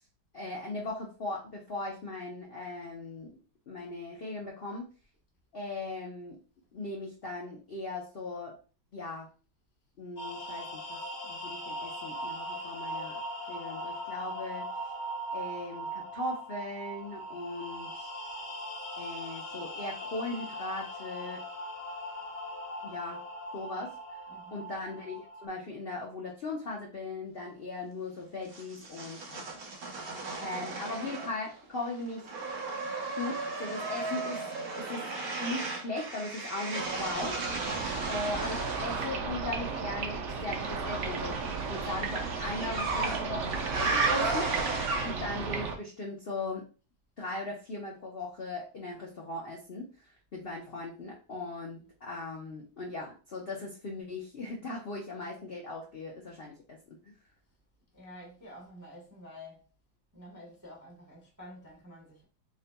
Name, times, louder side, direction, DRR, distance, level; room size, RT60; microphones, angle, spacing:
voice 1, 0.3-3.4 3.7-4.9 5.5-6.4 6.7-8.6 8.9-9.3 10.0-13.2 13.5-14.7 15.3-18.1 19.0-21.4 22.8-23.2 23.5-23.9 24.5-29.6 30.4-32.3 33.2-34.4 34.8-35.0 35.4-37.4 38.1-44.5 45.0-46.6 47.2-57.0, left 2 dB, 55° left, 0.6 m, -38 dB
sound 1, 10.2-25.5, equal, 35° left, 0.9 m, -40 dB
voice 2, 24.3-24.8 30.2-30.7 57.9-59.6 60.1-62.2, left 1 dB, 15° right, 0.7 m, -50 dB
sound 2, 28.5-31.6 31.9-39.1 40.7-45.4, right 3 dB, 55° right, 1.2 m, -35 dB
sound 3, 36.8-45.8, right 5 dB, 70° right, 0.6 m, -35 dB
4.0 x 3.8 x 2.2 m
omnidirectional pair, 2.1 m